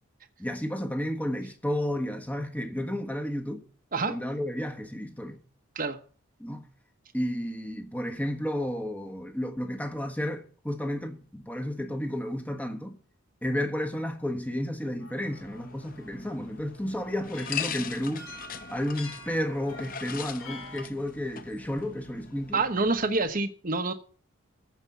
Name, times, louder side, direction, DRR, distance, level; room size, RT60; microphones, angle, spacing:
voice 1, 0.4-3.6 4.0-5.4 6.4-6.6 7.1-13.0 13.4-18.3 18.7-22.6, equal, 5° left, 1.4 m, -32 dB
sound 1, 15.0-20.9, left 2 dB, 90° left, 3.1 m, -48 dB
sound 2, 15.3-23.3, left 8 dB, 40° left, 0.7 m, -41 dB
voice 2, 22.5-23.9, right 3 dB, 40° right, 1.0 m, -27 dB
15.0 x 5.3 x 8.3 m
head